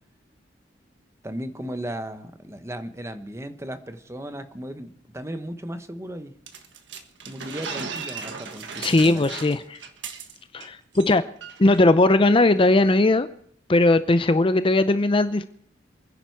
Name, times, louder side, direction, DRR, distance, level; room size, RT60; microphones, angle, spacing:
voice 1, 1.2-6.3 7.3-9.2, right 1 dB, 15° right, 9 dB, 1.1 m, -36 dB
sound 1, 6.5-10.7 10.9-11.1 11.4-11.8, right 5 dB, 80° right, 1.5 m, -36 dB
voice 2, 8.8-9.8 10.5-11.2 11.6-13.3 13.7-15.4, left 2 dB, 30° left, 12 dB, 0.5 m, -18 dB
27.5 x 10.5 x 4.6 m, 0.63 s
head